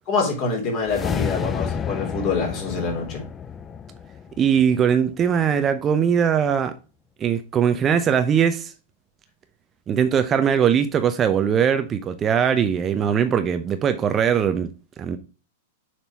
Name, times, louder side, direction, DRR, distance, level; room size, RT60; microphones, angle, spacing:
voice 1, 0.1-3.2, left 4 dB, 35° left, 3.4 m, -25 dB
Metal Suspense, 0.8-5.2, left 7 dB, 20° left, 0.5 m, -30 dB
voice 2, 4.4-6.7 7.2-8.7 9.9-14.7 15.0-15.2, right 8 dB, 25° right, 0.6 m, -20 dB
6.8 x 4.4 x 4.6 m
figure-of-eight pair, 95°, 0 cm